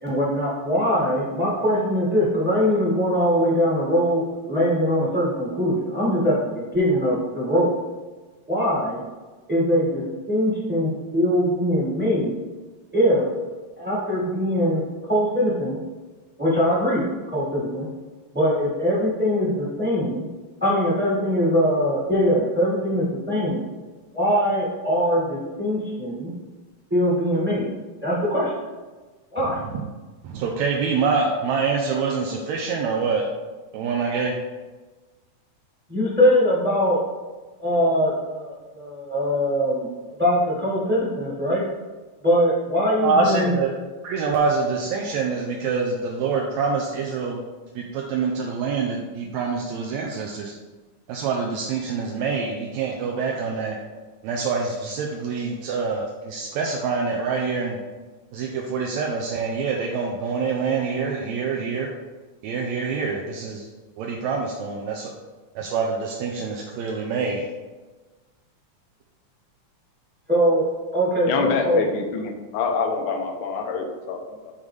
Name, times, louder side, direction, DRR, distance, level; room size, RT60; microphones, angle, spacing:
voice 1, 0.0-7.7 8.5-9.0 9.5-10.0 10.3-12.5 12.9-13.3 13.8-14.8 15.1-15.8 16.4-17.0 17.3-17.9 18.3-20.2 20.6-23.6 24.1-26.3 26.9-27.6 28.0-28.5 29.3-29.6 35.9-37.0 37.6-39.9 40.2-41.7 42.2-43.5 70.3-70.7 70.9-71.8, equal, 5° right, -6 dB, 0.9 m, -22 dB
voice 2, 29.4-29.9 30.2-33.2 33.7-34.4 43.0-43.7 44.0-47.4 47.8-50.5 51.1-53.8 54.2-57.8 58.3-61.9 62.4-63.7 64.0-65.1 65.6-67.4, right 4 dB, 80° right, 0 dB, 1.8 m, -25 dB
voice 3, 71.2-74.5, left 4 dB, 80° left, 2 dB, 1.2 m, -26 dB
8.7 x 3.9 x 3.2 m, 1.3 s
omnidirectional pair, 3.4 m